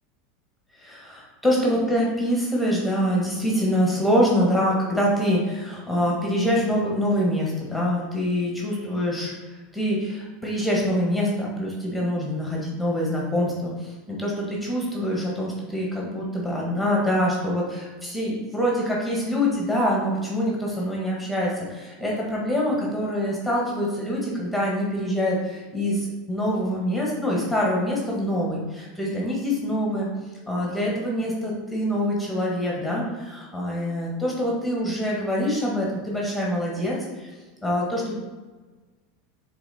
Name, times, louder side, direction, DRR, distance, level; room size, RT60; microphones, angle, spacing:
voice 1, 0.8-30.1 30.5-37.3 37.6-38.2, equal, ahead, -4 dB, 1.6 m, -25 dB
6.7 x 3.7 x 4.2 m, 1.3 s
figure-of-eight pair, 80°, 0 cm